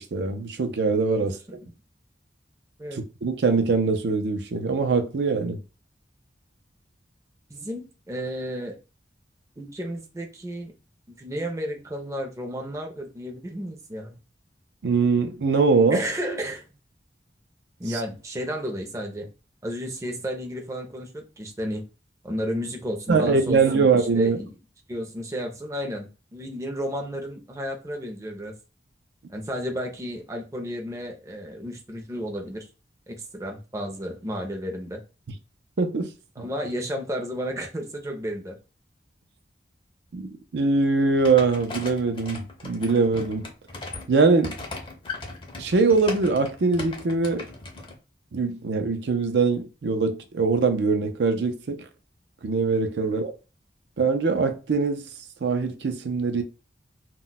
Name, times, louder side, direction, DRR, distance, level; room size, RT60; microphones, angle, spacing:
voice 1, 0.0-1.4 2.9-5.6 14.8-16.0 23.1-24.4 35.8-36.1 40.1-43.5 44.1-44.6 45.6-47.5 48.3-51.8 52.4-53.3 54.0-55.0 55.4-56.4, right 4 dB, 80° right, 0.5 m, -22 dB
voice 2, 7.5-8.8 9.6-10.7 11.2-14.2 15.9-16.6 17.8-19.3 19.6-21.8 22.2-24.5 24.9-28.5 29.3-32.7 33.1-35.0 36.4-38.6 53.0-53.2, equal, 20° right, 0.5 m, -32 dB
sound 1, 41.2-47.9, left 3 dB, 30° left, 0.5 m, -38 dB
2.2 x 2.1 x 3.8 m
head